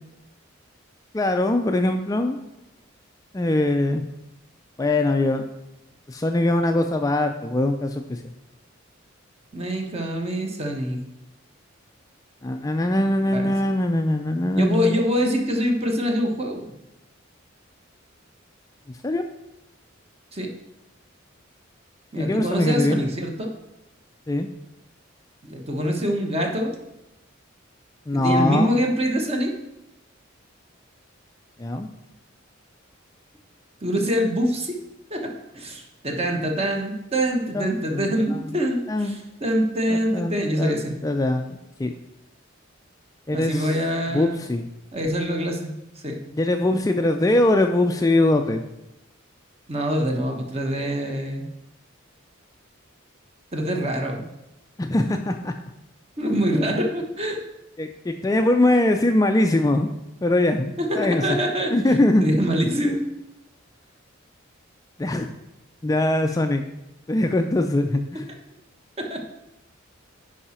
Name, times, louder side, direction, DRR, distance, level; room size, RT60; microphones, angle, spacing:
voice 1, 1.1-2.4 3.3-4.1 4.8-5.5 6.1-8.2 12.4-15.0 18.9-19.2 22.1-23.0 24.3-24.5 28.1-28.8 31.6-31.9 37.5-38.5 38.9-39.2 39.9-40.7 41.0-41.9 43.3-43.7 44.1-44.7 46.3-48.6 54.8-55.5 57.8-59.9 60.2-61.3 61.7-62.2 65.0-65.3 65.8-66.6 67.1-68.2, left 1 dB, 15° left, 5 dB, 0.4 m, -22 dB
voice 2, 9.5-11.0 13.3-13.5 14.6-16.7 20.3-20.5 22.1-23.5 25.4-26.7 28.1-29.5 33.8-34.8 35.1-40.9 43.3-44.4 44.9-45.7 46.0-46.2 49.7-51.5 53.5-54.3 56.2-57.4 60.8-61.7 62.2-63.0 69.0-69.2, equal, 30° right, 2 dB, 1.1 m, -25 dB
10.0 x 4.9 x 4.3 m, 0.91 s
head